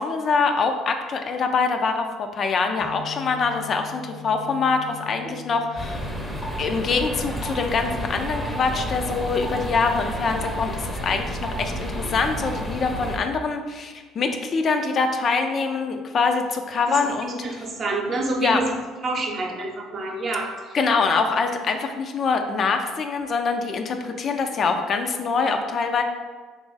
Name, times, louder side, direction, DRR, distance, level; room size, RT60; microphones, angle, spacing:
voice 1, 0.0-6.1 6.6-17.6 18.4-18.6 20.7-26.0, left 4 dB, 50° left, 5 dB, 0.4 m, -24 dB
sound 1, 2.8-10.1, left 10 dB, 90° left, 0.7 m, -43 dB
sound 2, 5.8-13.2, equal, 10° left, 0.6 m, -31 dB
voice 2, 17.4-18.7 19.0-20.7, right 2 dB, 45° right, 1 dB, 0.7 m, -27 dB
3.0 x 2.4 x 3.9 m, 1.4 s
supercardioid pair, 75°, 0 cm